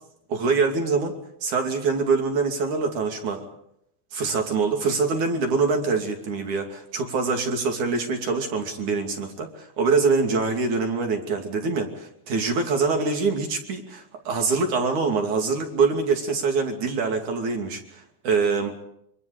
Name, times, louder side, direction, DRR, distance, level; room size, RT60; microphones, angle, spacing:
voice 1, 0.3-3.5 4.1-18.7, right 4 dB, 50° right, 4 dB, 3.7 m, -24 dB
27.0 x 24.5 x 5.0 m, 0.75 s
omnidirectional pair, 5.0 m